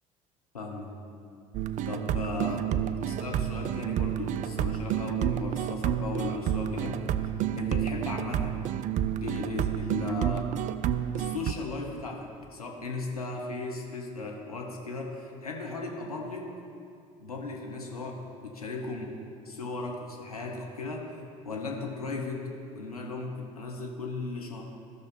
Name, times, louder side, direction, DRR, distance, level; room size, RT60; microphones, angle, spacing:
voice 1, 0.5-0.9 1.9-7.0 7.6-8.5 9.2-10.5 11.1-16.5 17.2-19.1 19.4-21.1 21.4-22.5 22.7-24.7, left 3 dB, 85° left, 0 dB, 1.0 m, -36 dB
sound 1, 1.5-11.5, right 10 dB, 40° right, 0.4 m, -30 dB
14.0 x 6.4 x 4.3 m, 2.5 s
figure-of-eight pair, 60°, 19 cm